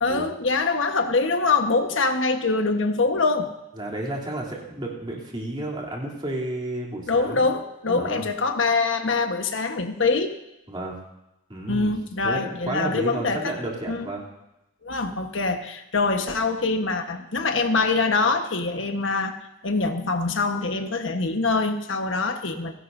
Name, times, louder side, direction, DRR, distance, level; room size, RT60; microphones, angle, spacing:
voice 1, 0.0-3.5 7.1-10.3 11.7-13.5 13.9-14.1 14.8-19.3 19.6-22.7, left 3 dB, 70° left, 6 dB, 1.2 m, -24 dB
voice 2, 3.8-7.5 7.9-8.3 10.7-11.0 11.5-11.9 12.2-14.2, right 1 dB, 25° right, -2 dB, 3.1 m, -31 dB
29.5 x 11.5 x 2.7 m, 0.93 s
head